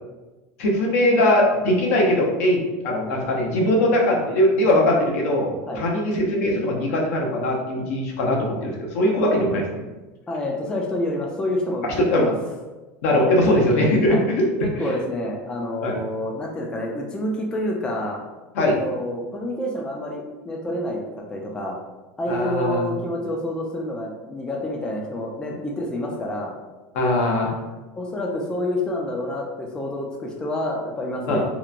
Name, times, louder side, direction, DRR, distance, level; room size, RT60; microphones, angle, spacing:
voice 1, 0.6-9.6 11.8-12.3 13.0-14.7 15.8-16.0 18.5-18.8 22.3-22.9 26.9-27.5 31.3-31.4, left 1 dB, 80° left, -1 dB, 0.7 m, -20 dB
voice 2, 10.3-11.9 12.1-12.3 14.1-14.2 14.6-18.2 18.8-21.0 21.3-21.8 22.2-26.6 27.9-31.4, left 1 dB, 10° left, 0 dB, 0.3 m, -28 dB
2.8 x 2.1 x 2.4 m, 1.2 s
supercardioid pair, 150°, 8 cm